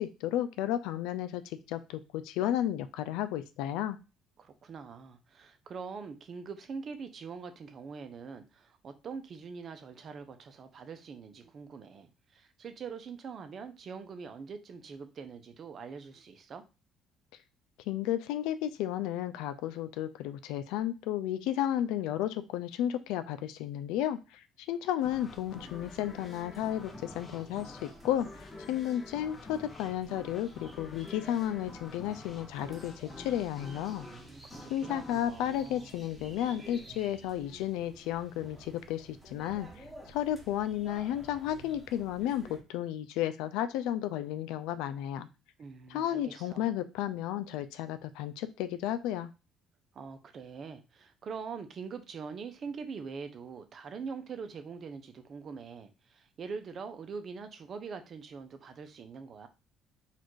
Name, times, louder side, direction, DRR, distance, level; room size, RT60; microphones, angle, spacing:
voice 1, 0.0-4.0 17.9-28.3 28.7-34.1 34.7-45.3 45.9-49.3, left 11 dB, 85° left, 0.4 m, -33 dB
voice 2, 4.4-16.6 34.0-35.9 45.6-46.7 49.9-59.5, right 5 dB, 45° right, 0.7 m, -43 dB
sound 1, 25.0-36.5, left 2 dB, 25° left, 0.8 m, -49 dB
sound 2, 25.0-42.6, right 1 dB, 5° right, 1.2 m, -53 dB
4.2 x 2.6 x 4.6 m
cardioid pair, 105°, 0 cm